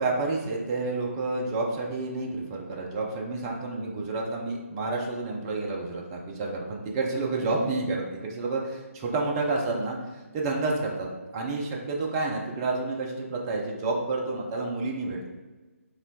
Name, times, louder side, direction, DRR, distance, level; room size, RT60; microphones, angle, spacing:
voice 1, 0.0-11.1 11.3-15.2, right 3 dB, 20° right, -1 dB, 0.3 m, -29 dB
4.0 x 2.2 x 2.7 m, 1.2 s
figure-of-eight pair, 150°, 8 cm